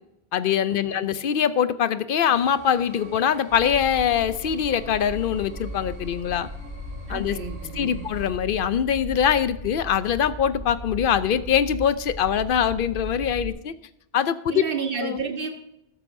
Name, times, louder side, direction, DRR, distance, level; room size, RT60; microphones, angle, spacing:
voice 1, 0.3-6.5 7.1-7.4 7.8-13.7 14.1-14.6 15.0-15.2, left 8 dB, 65° left, 14 dB, 0.7 m, -23 dB
sound 1, 2.3-8.3, right 1 dB, 80° left, 4.1 m, -45 dB
sound 2, 3.5-13.5, equal, 80° right, 3.5 m, -37 dB
voice 2, 7.1-8.1 14.5-15.5, right 5 dB, 60° right, 4 dB, 1.5 m, -31 dB
14.0 x 12.5 x 2.6 m, 0.82 s
omnidirectional pair, 1.1 m